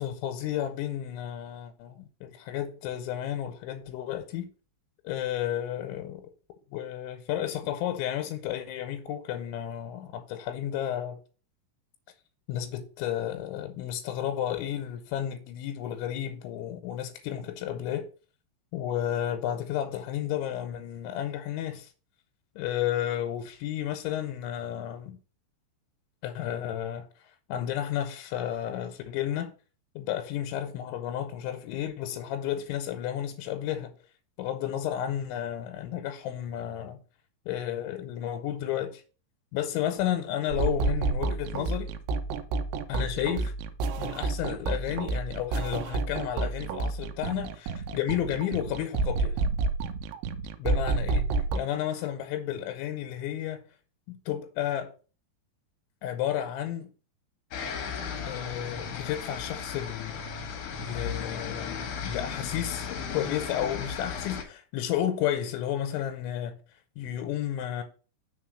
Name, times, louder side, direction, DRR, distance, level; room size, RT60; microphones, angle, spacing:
voice 1, 0.0-4.5 5.0-6.3 6.7-11.2 12.5-18.1 18.7-21.9 22.6-25.2 26.2-27.1 27.5-29.5 30.0-33.9 34.4-37.0 37.5-39.0 39.5-41.9 42.9-43.5 44.0-49.4 50.6-53.6 54.1-54.9 56.0-56.9 58.3-60.2 60.8-66.6 67.0-67.8, left 11 dB, 85° left, 3.1 m, -32 dB
sound 1, 40.5-51.6, right 3 dB, 85° right, 3.0 m, -29 dB
sound 2, 57.5-64.4, left 6 dB, 70° left, 2.0 m, -36 dB
6.5 x 3.8 x 6.3 m
omnidirectional pair, 5.3 m